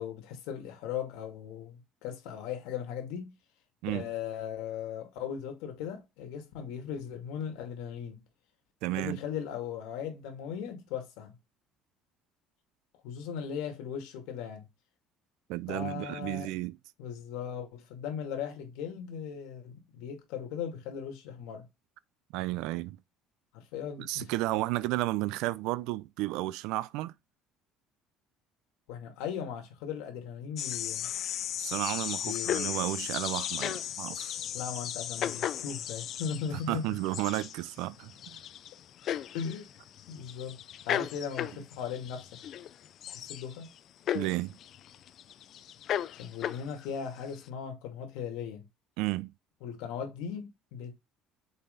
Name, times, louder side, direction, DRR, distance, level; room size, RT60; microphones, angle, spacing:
voice 1, 0.0-3.3 3.9-8.2 8.9-11.4 13.0-14.7 15.7-16.5 17.0-21.7 23.5-24.3 28.9-31.1 32.2-32.5 34.5-36.9 39.3-39.7 40.1-40.6 40.9-42.3 43.1-43.7 46.1-48.7 49.6-50.9, left 7 dB, 85° left, 2.4 m, -38 dB
voice 2, 8.8-9.2 15.5-16.8 22.3-23.0 24.0-27.1 31.6-34.4 36.7-38.1 44.1-44.6 49.0-49.3, right 18 dB, 75° right, 0.5 m, -32 dB
sound 1, 30.6-43.8 44.1-46.9 47.2-47.4, left 10 dB, 40° left, 0.4 m, -36 dB
6.7 x 4.5 x 3.9 m
cardioid pair, 165°, 0 cm